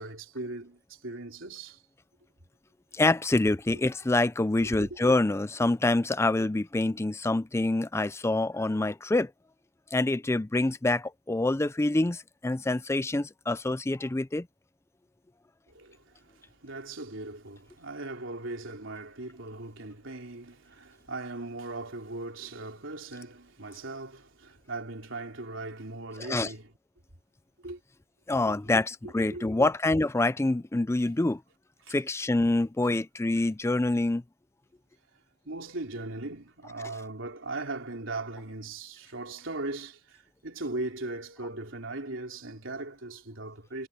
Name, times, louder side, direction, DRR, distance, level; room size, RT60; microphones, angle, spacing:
voice 1, 0.0-1.8 4.6-4.9 15.7-26.7 27.6-27.8 29.0-29.7 31.8-32.0 35.5-43.9, right 2 dB, 75° right, 3.6 m, -39 dB
voice 2, 2.9-9.3 9.9-14.5 26.2-26.5 28.3-31.4 31.9-34.2, left 2 dB, 15° left, 0.4 m, -26 dB
head